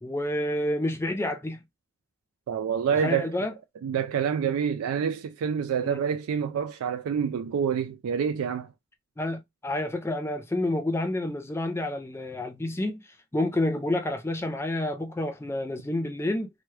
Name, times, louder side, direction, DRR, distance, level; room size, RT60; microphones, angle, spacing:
voice 1, 0.0-1.6 2.9-3.5 5.8-6.0 9.2-13.0 13.3-16.5, left 1 dB, 10° left, 0.3 m, -29 dB
voice 2, 2.5-3.5 3.8-8.7, right 7 dB, 80° right, 0.3 m, -27 dB
3.0 x 2.2 x 3.1 m
head